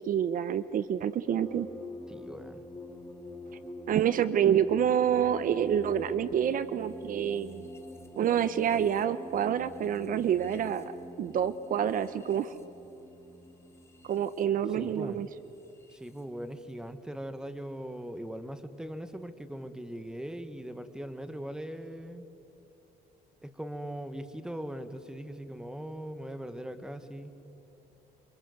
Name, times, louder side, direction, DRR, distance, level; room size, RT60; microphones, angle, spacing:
voice 1, 0.1-1.7 3.9-7.7 8.2-10.9 11.2-12.5 14.0-15.3, right 9 dB, 55° right, 14 dB, 0.9 m, -27 dB
sound 1, 1.2-16.2, left 1 dB, 15° left, 3.0 m, -47 dB
voice 2, 2.1-2.6 14.7-15.2 15.9-22.3 23.4-27.4, right 1 dB, 5° right, 10 dB, 1.8 m, -40 dB
28.0 x 25.5 x 8.1 m, 2.9 s
cardioid pair, 110°, 17 cm